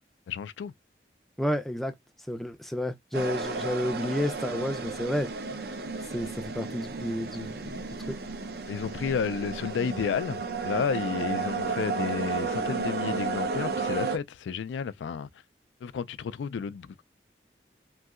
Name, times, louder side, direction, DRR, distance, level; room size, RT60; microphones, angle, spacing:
voice 1, 0.3-0.7 8.7-15.3 15.8-17.0, left 6 dB, 90° left, 0.3 m, -31 dB
voice 2, 1.4-1.9 2.3-5.3 6.1-7.8 8.1-8.2, left 1 dB, ahead, 0.4 m, -31 dB
sound 1, 3.1-14.2, right 4 dB, 55° right, 0.5 m, -33 dB
3.1 x 2.7 x 2.4 m
head